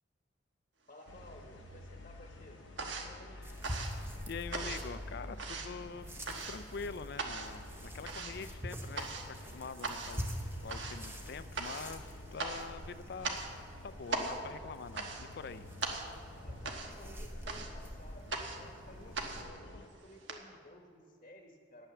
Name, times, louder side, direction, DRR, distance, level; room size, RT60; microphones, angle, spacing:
voice 1, 0.9-3.4 16.4-21.9, left 1 dB, 35° left, 3 dB, 1.0 m, -56 dB
sound 1, 1.0-1.8 2.1-20.3, right 3 dB, 70° right, 1.2 m, -41 dB
sound 2, 1.1-19.9, left 2 dB, 80° left, 0.7 m, -50 dB
sound 3, 3.4-19.4, equal, 10° right, 0.9 m, -46 dB
voice 2, 4.0-13.4 13.8-15.7, left 5 dB, 55° left, 14 dB, 0.4 m, -45 dB
9.7 x 9.0 x 6.9 m, 2.3 s
head